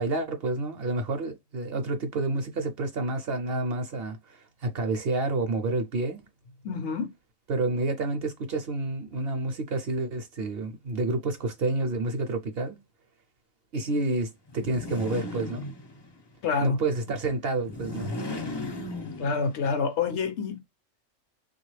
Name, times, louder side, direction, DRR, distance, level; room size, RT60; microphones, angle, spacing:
voice 1, 0.0-6.3 7.5-12.8 13.7-15.7 16.6-18.1, right 2 dB, 60° right, 0.7 m, -29 dB
voice 2, 6.6-7.1 16.4-16.8 19.2-20.6, left 5 dB, 65° left, 0.8 m, -27 dB
sound 1, 14.5-16.2 17.6-19.7, left 2 dB, 35° left, 0.4 m, -36 dB
3.4 x 2.4 x 3.1 m
omnidirectional pair, 1.3 m